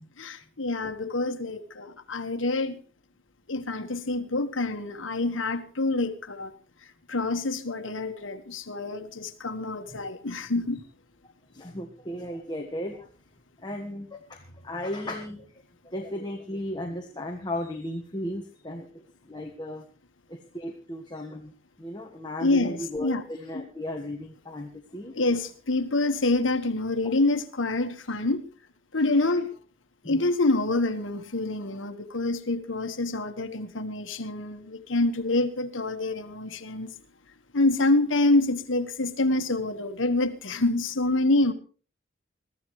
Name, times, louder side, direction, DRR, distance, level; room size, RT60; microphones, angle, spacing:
voice 1, 0.2-2.8 3.5-6.5 7.1-10.8 22.4-23.2 25.1-28.4 28.9-29.5 30.0-36.9 37.5-41.5, left 2 dB, 75° left, 1.5 m, -26 dB
voice 2, 11.5-13.1 13.6-15.4 15.8-19.8 20.3-21.5 21.8-25.1 28.9-29.2 30.0-30.2, left 1 dB, 20° left, 1.5 m, -35 dB
22.5 x 14.0 x 3.2 m
head